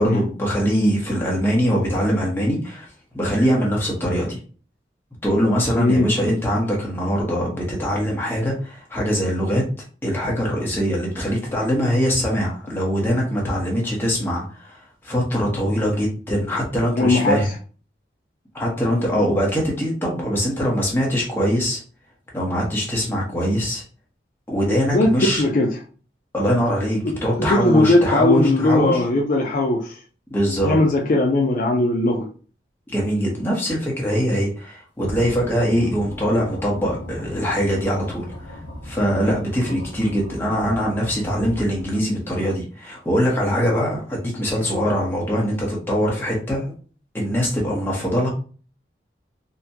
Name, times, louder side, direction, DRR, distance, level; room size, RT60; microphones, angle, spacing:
voice 1, 0.0-2.9 3.1-4.4 5.2-9.6 10.0-14.8 15.0-17.5 18.5-21.8 22.3-23.8 24.5-25.4 26.3-29.0 30.3-30.8 32.9-46.6 47.1-48.3, equal, 10° left, 0.9 m, -22 dB
voice 2, 5.8-6.1 17.0-17.5 24.9-25.8 27.0-30.0 30.6-32.3, left 2 dB, 45° left, 0.4 m, -19 dB
sound 1, 35.0-42.3, equal, 90° left, 0.8 m, -37 dB
3.9 x 2.1 x 2.8 m
head